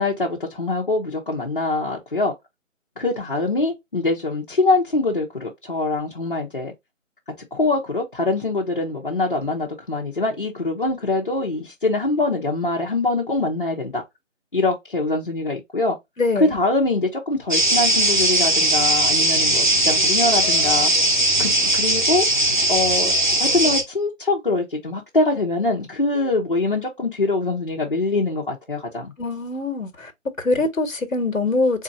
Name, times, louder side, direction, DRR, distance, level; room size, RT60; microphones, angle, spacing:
voice 1, 0.0-2.3 3.0-6.7 7.5-14.0 14.5-16.0 16.4-20.9 21.4-23.1 23.4-29.1, left 2 dB, 40° left, 1.1 m, -23 dB
voice 2, 16.2-16.6 29.2-30.1 30.4-31.8, left 3 dB, 80° left, 1.5 m, -23 dB
sound 1, 17.5-23.8, right 1 dB, 35° right, 1.0 m, -19 dB
4.3 x 2.8 x 2.8 m
figure-of-eight pair, 175°, 39 cm